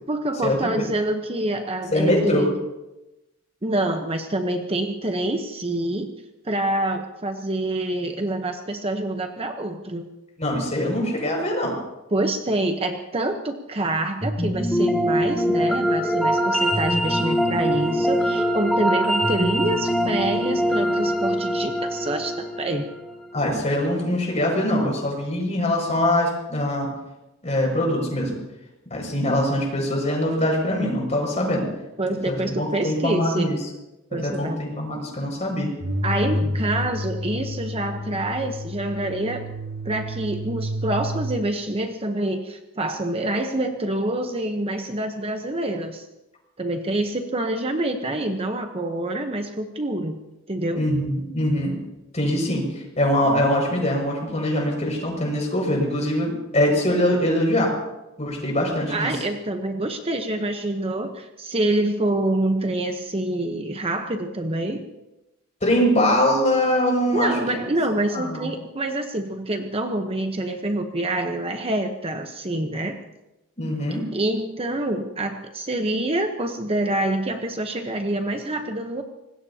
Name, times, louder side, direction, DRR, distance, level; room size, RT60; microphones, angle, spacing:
voice 1, 0.1-2.5 3.6-6.1 6.4-10.1 12.1-22.9 32.0-33.5 34.1-34.6 36.0-39.5 39.8-46.1 46.6-50.2 50.5-50.8 58.9-64.9 67.1-73.0 74.1-79.0, right 1 dB, 25° right, 5 dB, 1.0 m, -26 dB
voice 2, 1.9-2.5 10.4-11.7 23.3-26.9 27.4-28.3 28.9-31.6 32.2-33.6 34.2-35.7 50.8-51.7 52.1-57.7 58.2-59.1 65.6-67.6 68.1-68.4 73.6-74.0, left 1 dB, 35° left, 0 dB, 6.3 m, -23 dB
sound 1, 14.2-23.4, equal, ahead, 2.2 m, -23 dB
sound 2, 35.8-41.4, equal, 75° right, 2.3 m, -29 dB
25.0 x 20.0 x 2.9 m, 0.97 s
head